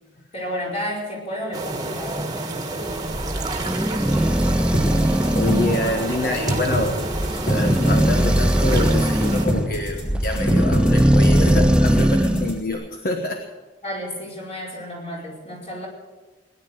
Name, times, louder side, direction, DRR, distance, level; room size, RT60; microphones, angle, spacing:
voice 1, 0.3-2.3 13.8-15.9, equal, 35° left, -3 dB, 5.0 m, -31 dB
sound 1, 1.5-9.5, right 2 dB, 20° right, 1.6 m, -29 dB
sound 2, 2.9-12.6, equal, 5° right, 0.4 m, -20 dB
sound 3, 4.7-12.7, equal, 80° left, 4.7 m, -26 dB
voice 2, 5.3-7.0 7.5-13.5, left 2 dB, 50° left, 4 dB, 1.3 m, -26 dB
19.5 x 10.5 x 6.4 m, 1.2 s
head